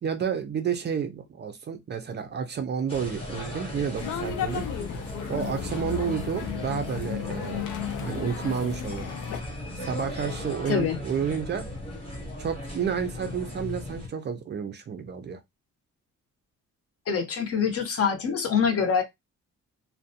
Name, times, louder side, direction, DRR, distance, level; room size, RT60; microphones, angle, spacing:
voice 1, 0.0-4.7 5.3-7.7 8.0-9.1 9.8-11.7 12.4-15.4, right 7 dB, 35° right, 0.4 m, -30 dB
sound 1, 2.9-14.1, left 1 dB, 20° left, 0.8 m, -37 dB
sound 2, 4.0-9.4, left 8 dB, 90° left, 0.5 m, -34 dB
voice 2, 10.7-11.0 17.1-19.0, left 6 dB, 50° left, 0.6 m, -25 dB
2.4 x 2.1 x 2.6 m
wide cardioid pair, 165°, 30 cm